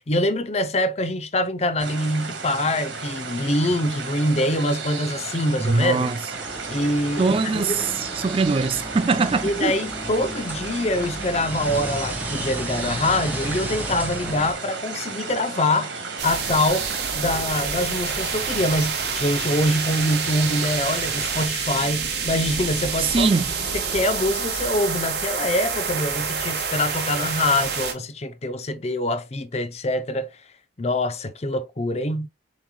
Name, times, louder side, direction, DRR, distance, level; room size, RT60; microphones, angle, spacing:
voice 1, 0.0-6.1 6.7-7.8 9.4-15.9 16.2-16.9 17.2-23.3 23.7-30.3 30.8-32.3, left 1 dB, 35° left, 0.5 m, -24 dB
sound 1, 1.8-21.5, right 4 dB, 80° right, 1.8 m, -34 dB
voice 2, 5.6-6.2 7.2-9.8 23.0-23.4, right 4 dB, 30° right, 0.3 m, -22 dB
sound 2, 6.3-14.5, right 1 dB, 10° right, 1.1 m, -33 dB
sound 3, 16.2-27.9, right 6 dB, 60° right, 1.4 m, -28 dB
7.2 x 3.2 x 2.2 m
head